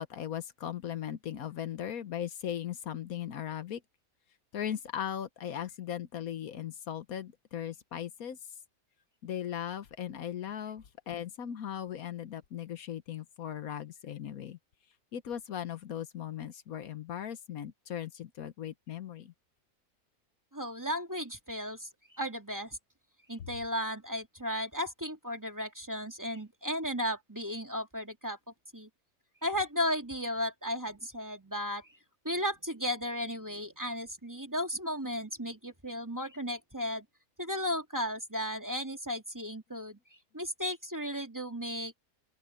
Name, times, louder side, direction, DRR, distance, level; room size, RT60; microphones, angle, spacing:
voice 1, 0.0-3.8 4.5-8.4 9.2-14.6 15.1-19.3, left 10 dB, 75° left, 1.4 m, -38 dB
voice 2, 20.5-21.9 22.1-22.8 23.3-28.4 28.7-28.9 29.4-31.9 32.2-37.0 37.4-40.0 40.3-41.9, equal, 10° right, 2.3 m, -35 dB
open air
omnidirectional pair, 1.5 m